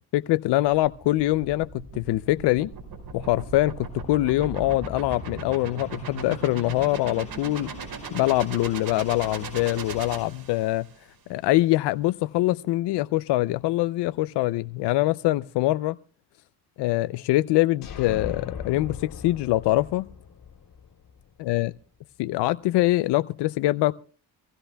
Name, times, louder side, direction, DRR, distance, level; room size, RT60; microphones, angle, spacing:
voice 1, 0.1-2.7 3.1-7.7 8.1-10.9 11.3-15.9 16.8-20.1 21.4-21.7 22.2-23.9, left 17 dB, 90° left, 0.6 m, -24 dB
sound 1, 0.6-11.0, right 4 dB, 60° right, 5.1 m, -38 dB
sound 2, 17.8-21.5, left 7 dB, 50° left, 3.6 m, -39 dB
25.0 x 16.0 x 2.2 m
cardioid pair, 95°, 40 cm